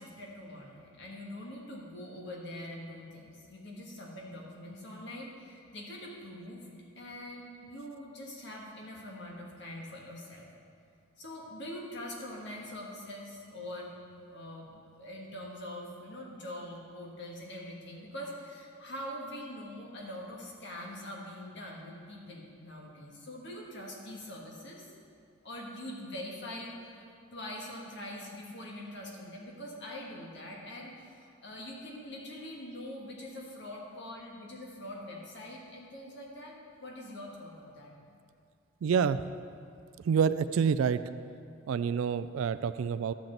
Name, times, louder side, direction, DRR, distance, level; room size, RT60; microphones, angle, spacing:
voice 1, 0.0-6.7 6.9-10.5 11.2-13.9 14.3-24.9 25.4-27.0 27.3-37.9, left 1 dB, 55° left, -2 dB, 1.6 m, -43 dB
voice 2, 38.8-39.2 40.0-41.0 41.7-43.1, right 6 dB, 70° right, 14 dB, 0.3 m, -27 dB
11.5 x 7.4 x 3.9 m, 2.3 s
head